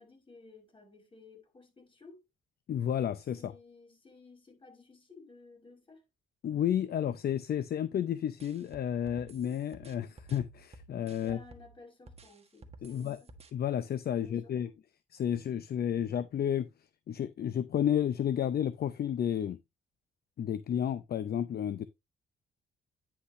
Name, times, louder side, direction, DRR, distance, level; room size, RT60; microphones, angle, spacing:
voice 1, 0.0-2.2 3.4-6.0 11.2-13.3 14.1-14.7, left 3 dB, 25° left, 5.4 m, -55 dB
voice 2, 2.7-3.5 6.4-11.4 12.8-13.2 13.5-14.7 15.1-16.7 17.1-19.6 20.4-21.9, left 9 dB, 50° left, 0.6 m, -31 dB
sound 1, 8.4-11.7 12.1-13.5, right 2 dB, 30° right, 1.6 m, -53 dB
9.8 x 5.7 x 3.1 m
cardioid pair, 90°, 20 cm